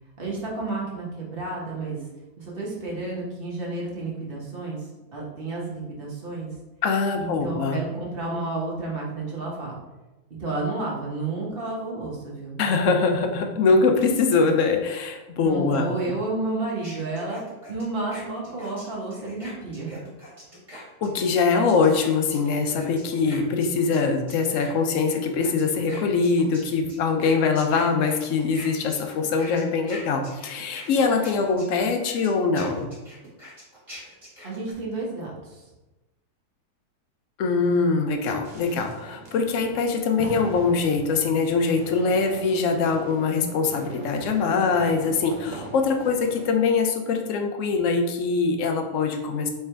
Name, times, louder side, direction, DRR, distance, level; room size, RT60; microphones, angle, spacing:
voice 1, 0.2-2.0 2.4-6.5 7.1-9.8 10.4-12.6 15.4-17.4 17.7-20.0 34.4-35.6, right 2 dB, 40° right, -3 dB, 1.1 m, -31 dB
voice 2, 6.8-7.8 12.6-15.9 21.0-32.9 37.4-49.5, left 4 dB, 70° left, 4 dB, 0.7 m, -23 dB
sound 1, 16.8-24.0 24.3-34.7, left 1 dB, 20° right, 1.6 m, -43 dB
sound 2, 38.4-46.6, right 3 dB, 80° right, 0.4 m, -40 dB
3.4 x 3.3 x 4.4 m, 1.1 s
omnidirectional pair, 1.8 m